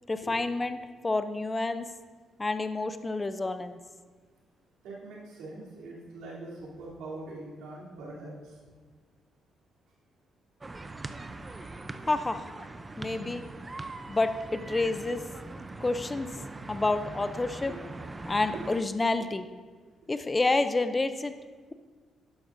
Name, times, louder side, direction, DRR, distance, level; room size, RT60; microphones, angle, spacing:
voice 1, 0.1-1.9 2.4-3.8 12.1-12.4 13.0-13.4 14.1-15.2 15.8-16.3 16.7-17.7 18.2-19.5 20.1-21.3, left 2 dB, 20° left, 10 dB, 0.5 m, -29 dB
voice 2, 4.8-8.6 13.0-13.3 17.7-17.8 18.5-18.6, right 2 dB, 90° right, -6 dB, 3.2 m, -43 dB
sound 1, 10.6-18.8, right 2 dB, 25° right, 0.6 m, -42 dB
11.5 x 11.0 x 2.6 m, 1.4 s
cardioid pair, 90°, 0 cm